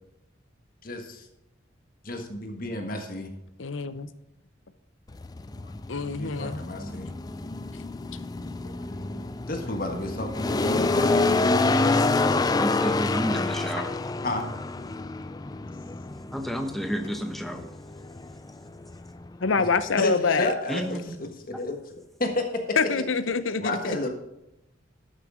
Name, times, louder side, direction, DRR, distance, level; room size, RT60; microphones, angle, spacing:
voice 1, 0.8-1.3 2.0-3.3 6.2-7.1 8.4-9.2 9.5-11.3 12.3-12.4 14.2-14.5 17.5-17.6 19.5-19.6 20.0-21.8 22.2-22.8 23.6-24.1, left 2 dB, 45° left, 4 dB, 1.5 m, -31 dB
voice 2, 3.6-4.1 5.9-6.6 19.4-20.5 22.8-23.8, left 4 dB, 75° left, 13 dB, 0.7 m, -25 dB
sound 1, 5.1-19.5, left 3 dB, 20° left, 0.3 m, -27 dB
voice 3, 12.6-13.9 16.3-17.7 20.7-21.2, equal, ahead, 5 dB, 0.9 m, -30 dB
12.0 x 6.6 x 5.0 m, 0.85 s
head